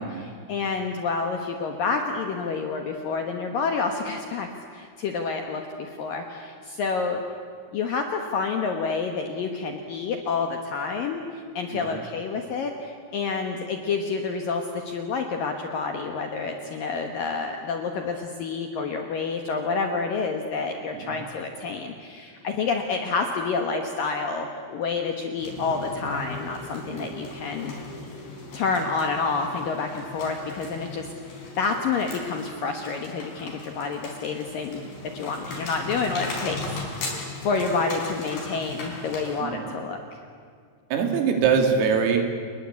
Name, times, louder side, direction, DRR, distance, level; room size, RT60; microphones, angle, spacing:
voice 1, 0.0-7.2 7.7-27.7 28.5-34.9 35.1-36.6 36.9-37.2 37.4-40.0, left 4 dB, 70° left, 4 dB, 2.2 m, -29 dB
sound 1, 25.4-39.4, left 2 dB, 45° left, 6.3 m, -38 dB
voice 2, 40.9-42.4, right 6 dB, 80° right, 4 dB, 5.2 m, -23 dB
29.5 x 20.5 x 8.3 m, 2.2 s
omnidirectional pair, 5.9 m